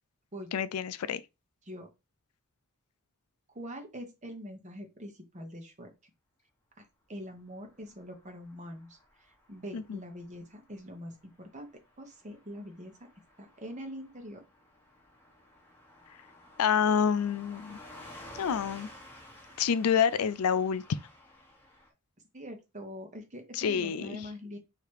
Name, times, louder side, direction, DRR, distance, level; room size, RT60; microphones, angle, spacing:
voice 1, 0.5-1.2 9.7-10.0 16.6-17.8 18.3-18.9 19.6-20.8 23.5-24.2, left 7 dB, 80° left, 0.4 m, -28 dB
voice 2, 3.5-5.9 7.1-9.0 9.5-11.7 12.0-13.0 13.4-14.4 22.3-24.6, equal, 35° right, 1.1 m, -43 dB
Car passing by / Truck, 7.5-21.9, left 1 dB, 10° left, 1.0 m, -53 dB
3.2 x 2.9 x 4.6 m
head